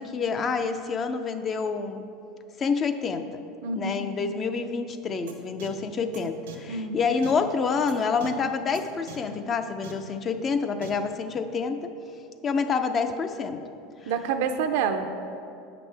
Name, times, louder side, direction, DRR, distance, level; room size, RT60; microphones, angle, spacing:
voice 1, 0.0-2.0 2.6-3.4 3.7-11.9 12.4-13.6 14.0-14.1, left 5 dB, 30° left, 8 dB, 0.4 m, -28 dB
voice 2, 3.6-4.0 6.7-7.0 14.1-15.1, right 6 dB, 70° right, 7 dB, 0.5 m, -27 dB
sound 1, 5.3-5.4 5.6-5.7 6.1-6.2 6.5-6.6 7.2-7.3 7.9-8.0 8.2-8.3 8.7-8.8 9.1-9.2 9.8-9.9 10.8-10.9, right 8 dB, 85° right, 0.9 m, -41 dB
8.4 x 6.0 x 3.4 m, 2.6 s
supercardioid pair, 115°, 0 cm